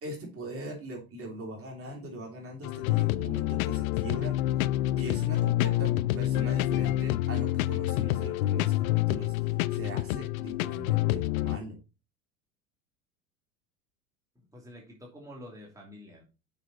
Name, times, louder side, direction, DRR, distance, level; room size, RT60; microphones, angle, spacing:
voice 1, 0.0-4.4 5.0-11.8, right 1 dB, 30° right, 1 dB, 3.2 m, -40 dB
sound 1, 2.6-11.6, left 16 dB, 80° left, 0.5 m, -27 dB
voice 2, 14.3-16.2, left 1 dB, 10° right, -2 dB, 2.7 m, -48 dB
6.7 x 5.8 x 4.0 m, 0.30 s
hypercardioid pair, 100°, 42 cm